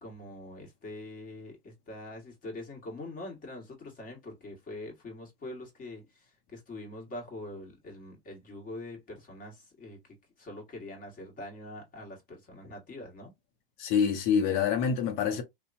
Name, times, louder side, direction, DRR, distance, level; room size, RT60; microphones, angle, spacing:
voice 1, 0.0-10.0 10.4-13.3, left 1 dB, 30° left, 1.5 m, -44 dB
voice 2, 13.8-15.4, left 7 dB, 55° left, 0.9 m, -26 dB
2.8 x 2.2 x 2.6 m
hypercardioid pair, 95°, 29 cm